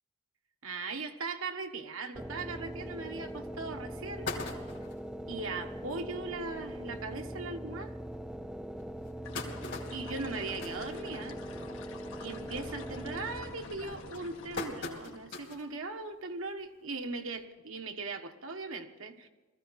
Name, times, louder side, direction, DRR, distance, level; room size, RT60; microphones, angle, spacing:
voice 1, 0.6-4.3 5.3-8.0 9.9-11.4 12.2-19.3, right 3 dB, 70° right, 5 dB, 1.5 m, -39 dB
sound 1, 2.2-13.9, right 1 dB, 5° right, 0.4 m, -42 dB
sound 2, 3.1-3.2 3.7-3.8 4.0-5.1 5.6-5.7 6.0-6.1 6.4-6.6 7.3-7.4 7.9-8.0 8.8-11.6 12.0-12.3 12.7-13.1 13.7-15.7 16.1-16.2 17.4-17.5, left 3 dB, 65° left, 3.0 m, -41 dB
sound 3, 9.2-15.3, left 3 dB, 80° left, 2.2 m, -48 dB
20.0 x 15.0 x 4.2 m, 1.3 s
head